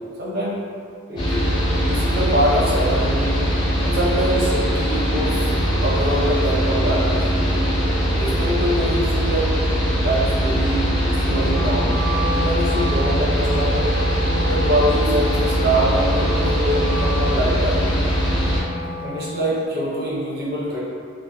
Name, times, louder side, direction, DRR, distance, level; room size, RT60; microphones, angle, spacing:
voice 1, 0.2-0.6 1.1-1.5 1.8-3.4 3.8-5.5 5.8-7.6 8.1-9.5 10.0-10.9 11.1-12.0 12.3-13.9 14.5-17.8 19.0-20.8, right 1 dB, 45° right, -6 dB, 0.5 m, -24 dB
Mechanical fan, 1.2-18.6, equal, 20° left, 0.4 m, -21 dB
Wind instrument woodwind instrument, 11.4-19.4, right 1 dB, 70° left, 1.0 m, -31 dB
2.8 x 2.1 x 2.3 m, 2.2 s
head